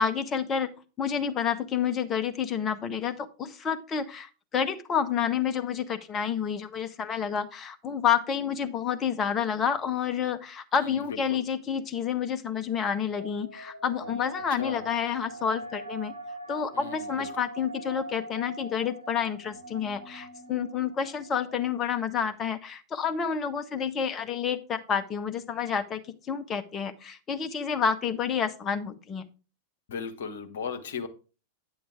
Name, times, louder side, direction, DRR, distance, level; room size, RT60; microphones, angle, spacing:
voice 1, 0.0-16.1 16.5-26.0 26.3-29.2, left 7 dB, 25° left, 9 dB, 0.8 m, -29 dB
voice 2, 10.8-11.4 14.5-14.9 16.7-17.4 29.9-31.1, left 6 dB, 60° left, 6 dB, 1.1 m, -37 dB
sound 1, 13.1-21.5, right 2 dB, 80° right, 1.1 m, -42 dB
9.6 x 7.1 x 3.5 m, 0.33 s
figure-of-eight pair, 90°, 0 cm